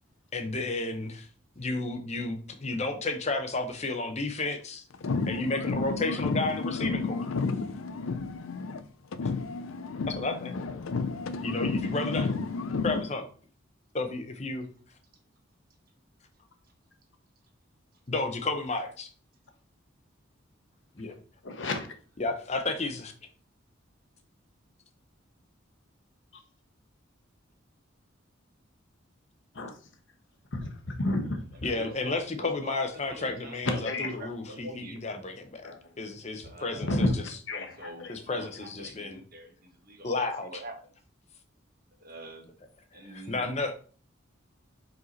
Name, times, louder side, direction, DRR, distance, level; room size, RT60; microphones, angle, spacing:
voice 1, 0.3-1.3 1.6-4.8 5.3-7.3 10.1-10.6 11.4-12.3 12.8-13.3 13.9-14.7 18.1-19.1 21.0-21.1 22.2-23.1 31.6-35.7 36.0-37.1 38.1-39.2 40.0-40.6 42.9-43.7, left 2 dB, 35° left, 6 dB, 0.7 m, -32 dB
sound 1, 4.9-8.8 9.1-13.1, left 4 dB, 90° left, 0.5 m, -31 dB
voice 2, 21.4-21.9 29.5-29.8 30.5-31.4 33.7-34.1 35.6-35.9 36.8-38.1, left 2 dB, 65° left, 5 dB, 1.0 m, -31 dB
voice 3, 31.6-35.0 36.4-37.0 37.8-40.8 42.0-42.5 42.9-43.4, right 1 dB, 45° right, 3 dB, 1.3 m, -45 dB
4.9 x 4.7 x 4.1 m, 0.41 s
head